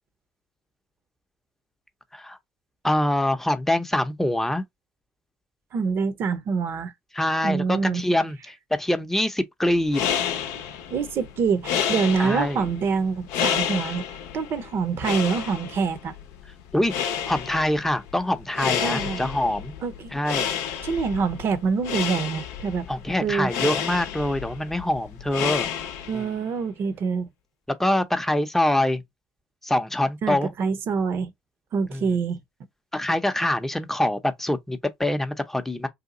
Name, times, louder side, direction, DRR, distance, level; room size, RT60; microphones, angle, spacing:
voice 1, 2.8-4.6 7.1-10.0 12.2-12.7 16.7-17.0 17.3-19.7 20.1-20.5 22.9-25.7 26.1-26.4 27.7-29.0 29.6-30.5 31.9-32.2 32.9-35.9, left 1 dB, 5° left, 0.6 m, -24 dB
voice 2, 5.7-6.9 7.4-8.0 10.9-14.0 14.3-16.1 18.8-19.2 19.8-20.1 20.8-22.9 23.2-23.5 26.1-27.3 30.2-31.3 31.7-32.4, right 5 dB, 55° right, 0.7 m, -25 dB
sound 1, 9.7-26.3, left 9 dB, 75° left, 0.6 m, -30 dB
2.8 x 2.3 x 3.7 m
hypercardioid pair, 70°, 5 cm